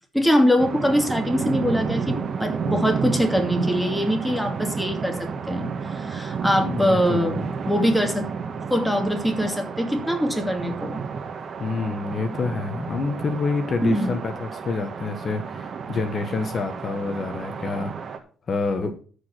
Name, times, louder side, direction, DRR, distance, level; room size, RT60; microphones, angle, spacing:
voice 1, 0.1-8.3 8.7-11.0 13.8-14.2, equal, ahead, 4 dB, 2.6 m, -23 dB
sound 1, 0.6-18.2, right 5 dB, 50° right, 1.6 m, -31 dB
voice 2, 6.6-7.4 11.6-17.9 18.5-18.9, left 4 dB, 50° left, 7 dB, 1.3 m, -27 dB
13.0 x 5.0 x 6.1 m, 0.41 s
cardioid pair, 90°, 0 cm